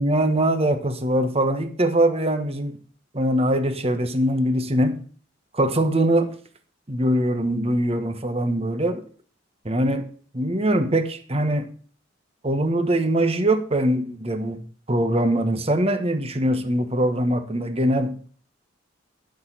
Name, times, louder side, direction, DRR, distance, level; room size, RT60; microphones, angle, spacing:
voice 1, 0.0-2.8 3.1-5.0 5.5-6.3 6.9-9.0 9.6-10.1 10.3-11.7 12.4-14.6 14.9-18.3, right 1 dB, 30° right, 8 dB, 1.3 m, -22 dB
12.0 x 6.5 x 5.7 m, 0.44 s
head